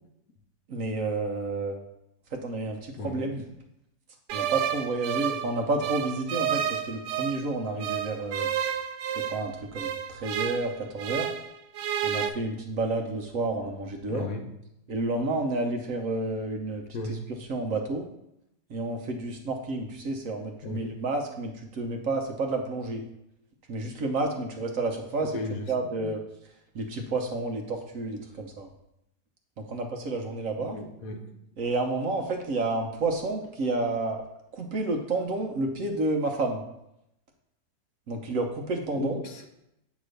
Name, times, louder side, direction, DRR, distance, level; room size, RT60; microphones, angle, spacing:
voice 1, 0.7-1.8 2.3-3.5 4.3-8.5 9.2-11.3 12.0-14.3 14.9-18.1 18.7-23.0 23.7-25.4 25.7-26.2 26.7-28.7 29.6-30.8 31.6-34.2 34.5-36.6 38.1-39.2, right 2 dB, 60° right, 3 dB, 1.1 m, -30 dB
sound 1, 4.3-7.5 7.8-11.5 11.7-12.3, right 9 dB, 90° right, 1.2 m, -31 dB
voice 2, 14.1-14.5 16.9-17.3 20.6-20.9 25.2-25.6 30.6-31.3 38.9-39.5, left 2 dB, 65° left, 4 dB, 1.1 m, -35 dB
8.3 x 3.0 x 6.4 m, 0.82 s
omnidirectional pair, 1.7 m